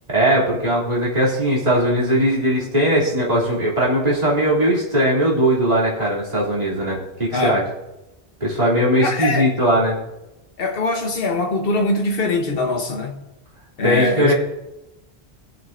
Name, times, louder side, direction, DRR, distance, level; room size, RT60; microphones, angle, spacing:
voice 1, 0.1-7.6 8.4-10.0 13.8-14.3, equal, 35° right, 3.2 m, -19 dB
voice 2, 9.0-9.5 10.6-13.2 13.8-14.3, left 2 dB, 60° left, 1.4 m, -22 dB
20.5 x 7.7 x 2.6 m
omnidirectional pair, 1.1 m